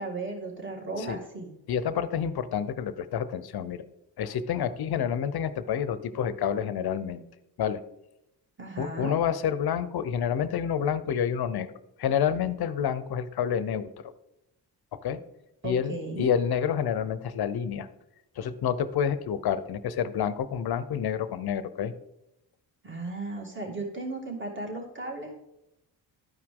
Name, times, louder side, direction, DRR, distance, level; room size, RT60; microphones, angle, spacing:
voice 1, 0.0-1.5 8.6-9.1 15.6-16.3 22.8-25.4, right 2 dB, 25° right, 0 dB, 2.1 m, -35 dB
voice 2, 1.7-3.8 4.2-7.3 7.6-7.8 8.8-11.7 12.0-13.9 14.9-15.2 15.6-17.9 18.4-21.9, left 8 dB, 60° left, 13 dB, 0.7 m, -28 dB
12.5 x 4.8 x 3.7 m, 0.88 s
cardioid pair, 80°, 43 cm